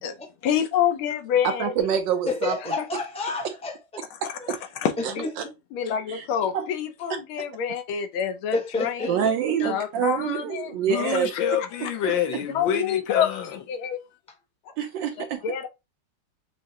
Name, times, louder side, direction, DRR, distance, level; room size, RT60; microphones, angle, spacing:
voice 1, 0.4-1.7 2.8-2.9 4.2-4.3 4.8-5.3 5.7-9.3 9.6-10.8 11.1-11.4 12.5-13.3 13.7-14.0 15.4-15.7, left 8 dB, 90° left, 1.5 m, -27 dB
voice 2, 1.4-2.6 3.4-3.5 4.5-4.6 5.4-5.5 6.1-6.2 6.5-6.6 9.1-11.3 14.8-15.4, right 8 dB, 75° right, 1.2 m, -26 dB
voice 3, 2.2-4.0 4.4-4.5 5.2-5.5 8.5-9.3, left 3 dB, 5° left, 0.6 m, -30 dB
voice 4, 10.9-13.6, left 9 dB, 75° left, 1.3 m, -27 dB
6.0 x 2.0 x 2.7 m
omnidirectional pair, 2.2 m